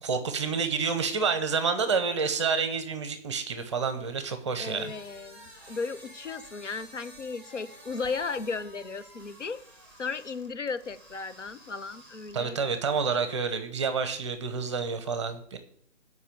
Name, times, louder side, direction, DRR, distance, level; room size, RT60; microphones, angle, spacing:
voice 1, 0.0-4.9 12.3-15.6, right 5 dB, 25° right, 10 dB, 0.9 m, -29 dB
sound 1, 4.5-12.7, right 1 dB, 5° left, 1.6 m, -51 dB
voice 2, 4.6-9.6 10.0-12.6, left 4 dB, 75° left, 12 dB, 1.2 m, -35 dB
8.4 x 5.4 x 7.8 m, 0.64 s
figure-of-eight pair, 155°, 36 cm